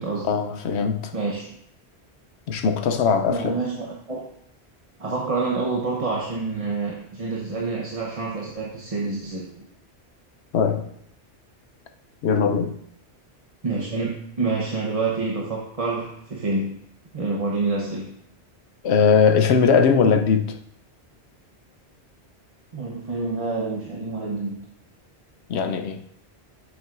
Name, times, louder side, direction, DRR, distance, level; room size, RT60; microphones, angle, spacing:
voice 1, 0.2-1.1 2.5-3.6 10.5-10.9 12.2-12.8 18.8-20.6 25.5-26.0, left 6 dB, 80° left, 0.9 m, -20 dB
voice 2, 1.1-1.6 3.3-4.3 5.0-9.5 13.6-16.8 17.1-18.1 22.7-24.6, right 3 dB, 35° right, 0.9 m, -27 dB
9.1 x 7.4 x 2.5 m
omnidirectional pair, 1.1 m